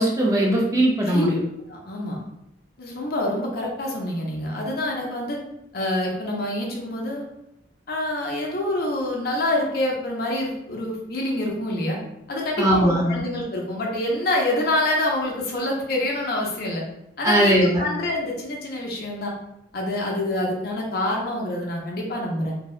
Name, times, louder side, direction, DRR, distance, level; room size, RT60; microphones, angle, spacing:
voice 1, 0.0-1.4 12.6-13.2 17.2-17.8, right 1 dB, 15° right, -3 dB, 0.4 m, -20 dB
voice 2, 1.7-2.2 2.8-5.4 5.7-7.3 7.9-12.0 12.3-16.8 17.2-19.3 19.7-22.6, left 1 dB, 55° left, -1 dB, 0.5 m, -26 dB
2.6 x 2.1 x 2.3 m, 0.84 s
head